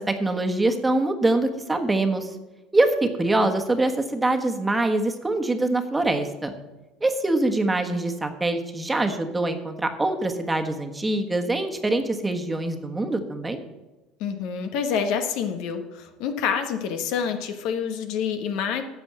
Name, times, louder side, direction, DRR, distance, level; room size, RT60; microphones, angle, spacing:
voice 1, 0.0-2.3 2.7-6.5 7.0-13.6, right 2 dB, 15° right, 5 dB, 1.4 m, -24 dB
voice 2, 14.2-18.8, left 7 dB, 65° left, 7 dB, 1.2 m, -27 dB
9.8 x 6.7 x 7.5 m, 1.1 s
hypercardioid pair, 80°, 0 cm